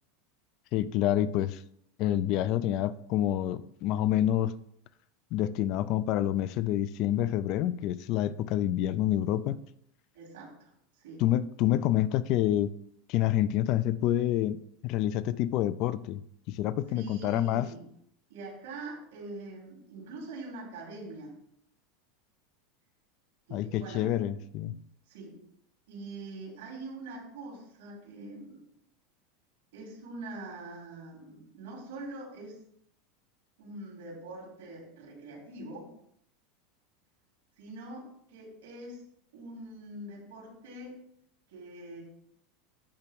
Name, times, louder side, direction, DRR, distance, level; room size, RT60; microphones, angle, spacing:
voice 1, 0.7-1.6 2.0-4.5 5.3-9.6 11.2-12.7 13.1-16.2 16.5-17.7 23.5-24.8, left 12 dB, 45° left, 15 dB, 0.5 m, -28 dB
voice 2, 10.1-10.7 11.0-11.2 16.9-17.8 18.3-21.4 23.5-24.4 25.1-25.4 25.9-28.6 29.7-32.6 33.6-35.9 37.6-39.0 39.3-41.0 41.5-42.0, right 2 dB, 90° right, -2 dB, 4.0 m, -43 dB
10.5 x 3.5 x 6.9 m, 0.70 s
supercardioid pair, 155°, 0 cm